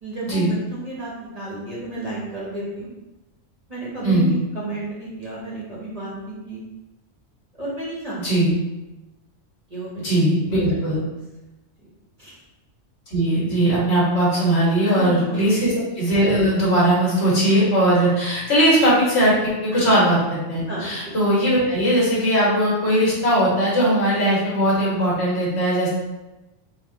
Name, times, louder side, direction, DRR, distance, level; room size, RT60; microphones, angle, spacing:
voice 1, 0.0-2.9 3.7-6.6 7.5-8.2 9.7-10.1 10.5-10.9 12.2-12.4 14.8-15.5 19.7-19.9 20.7-20.8, right 2 dB, 35° right, -8 dB, 1.1 m, -32 dB
voice 2, 8.2-8.5 10.0-11.0 13.1-25.9, right 1 dB, 55° left, -6 dB, 1.6 m, -19 dB
4.1 x 2.5 x 3.8 m, 1.0 s
omnidirectional pair, 1.3 m